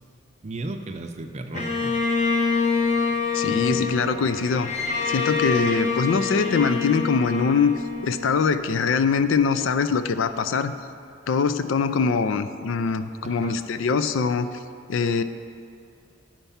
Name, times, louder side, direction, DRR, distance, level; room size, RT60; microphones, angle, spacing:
voice 1, 0.4-2.0 3.5-3.9 13.2-13.6, right 2 dB, 35° right, 5 dB, 0.5 m, -35 dB
Bowed string instrument, 1.5-8.8, left 4 dB, 40° left, 0.9 m, -26 dB
voice 2, 3.3-4.7 5.0-7.7 8.0-10.7 11.3-14.5 14.9-15.2, left 5 dB, 80° left, 11 dB, 0.4 m, -23 dB
10.0 x 4.5 x 5.6 m, 2.4 s
head